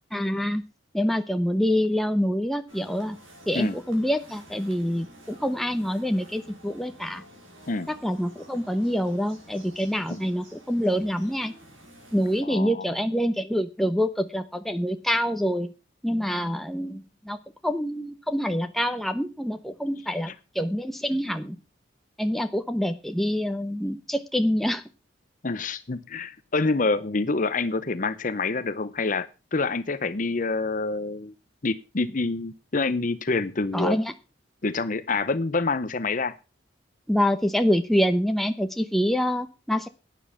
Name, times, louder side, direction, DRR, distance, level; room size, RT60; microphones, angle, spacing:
voice 1, 0.1-0.6 0.9-3.2 3.5-7.2 7.9-11.5 12.1-15.7 16.0-17.4 17.6-21.6 22.2-24.8 33.7-34.1 37.1-39.9, equal, ahead, 7 dB, 0.9 m, -26 dB
sound 1, 2.7-12.4, equal, 85° right, 5.2 m, -50 dB
voice 2, 12.4-12.9 25.4-31.3 31.6-34.0 34.6-36.4, left 3 dB, 40° left, 14 dB, 0.7 m, -27 dB
11.5 x 9.3 x 5.6 m, 0.30 s
head